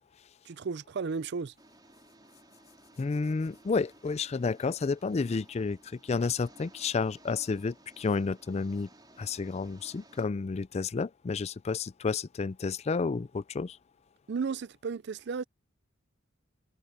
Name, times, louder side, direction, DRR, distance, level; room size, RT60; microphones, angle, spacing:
voice 1, 0.5-1.5 14.3-15.4, right 5 dB, 55° right, 0.4 m, -34 dB
Engine, 1.6-10.2, right 2 dB, 20° right, 4.0 m, -58 dB
voice 2, 3.0-8.9 9.2-13.8, left 4 dB, 30° left, 0.4 m, -31 dB
head